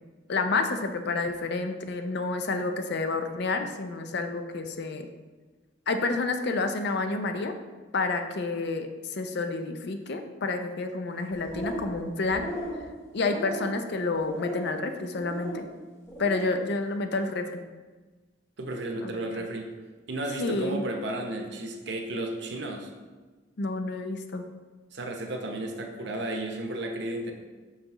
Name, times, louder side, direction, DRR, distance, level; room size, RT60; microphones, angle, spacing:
voice 1, 0.3-5.1 5.9-7.5 7.9-12.5 13.1-15.7 16.2-17.6 19.0-19.4 20.4-20.8 23.6-24.4, left 3 dB, 60° left, 7 dB, 0.5 m, -29 dB
sound 1, 11.3-12.0 12.3-12.8 13.2-13.8 14.3-14.8 15.2-15.6 16.0-16.5, equal, 15° left, 1.2 m, -36 dB
voice 2, 18.6-19.7 20.1-22.9 24.9-27.3, right 1 dB, 65° right, 3 dB, 0.8 m, -33 dB
6.6 x 5.7 x 3.0 m, 1.3 s
head